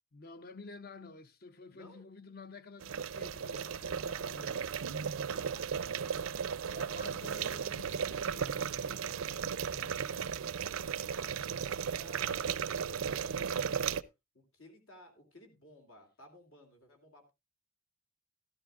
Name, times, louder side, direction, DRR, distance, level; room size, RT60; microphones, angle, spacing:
voice 1, 0.1-4.7 6.7-10.4, left 4 dB, 45° left, 0.7 m, -51 dB
voice 2, 1.7-2.0 4.1-4.7 5.3-6.3 7.3-7.4 11.0-14.0 14.3-17.3, left 1 dB, 75° left, 2.8 m, -57 dB
sound 1, 2.8-14.0, right 7 dB, 70° right, 0.5 m, -35 dB
13.0 x 13.0 x 2.4 m
head